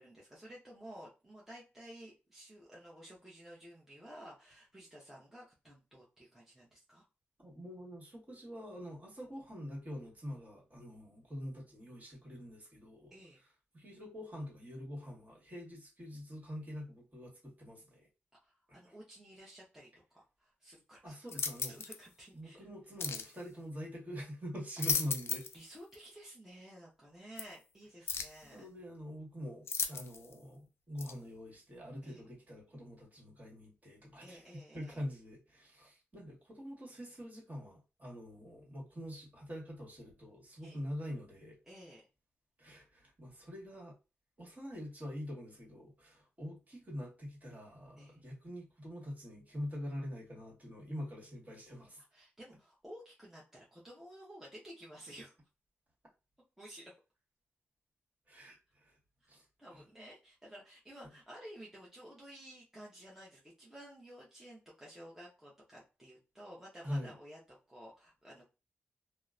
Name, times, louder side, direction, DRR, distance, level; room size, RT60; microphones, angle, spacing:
voice 1, 0.0-7.0 13.1-13.4 18.4-21.2 21.7-22.6 25.5-28.7 32.0-32.2 34.2-35.0 40.6-40.8 41.7-42.1 48.0-48.2 52.1-55.3 56.6-56.9 59.2-59.3 59.6-67.4 67.7-68.5, equal, 10° right, 0.9 m, -53 dB
voice 2, 7.4-13.1 13.7-18.0 21.0-21.8 22.3-25.4 28.5-41.6 42.6-43.9 44.4-52.0 58.3-59.0 59.3-59.4 66.8-67.1, equal, 35° right, 1.5 m, -45 dB
sound 1, 21.3-22.0 23.0-23.3 24.6-25.6 25.9-26.0 27.4-27.5 28.1-28.4 29.7-30.3 31.0-31.1, left 5 dB, 65° left, 0.4 m, -36 dB
2.8 x 2.1 x 2.4 m
cardioid pair, 70°, 5 cm